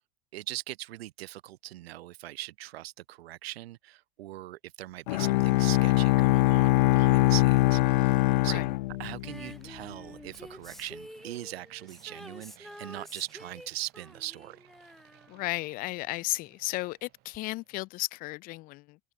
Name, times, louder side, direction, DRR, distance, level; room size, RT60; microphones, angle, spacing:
voice 1, 0.3-8.7 9.0-14.6, right 15 dB, 80° right, 1.4 m, -40 dB
Bowed string instrument, 5.1-9.5, left 19 dB, 55° left, 0.5 m, -23 dB
sound 1, 5.9-17.9, right 20 dB, 30° right, 7.8 m, -62 dB
Female singing, 9.2-16.2 17.3-17.4, equal, ahead, 3.2 m, -48 dB
voice 2, 15.3-19.0, left 20 dB, 30° left, 1.4 m, -34 dB
open air
supercardioid pair, 180°, 30 cm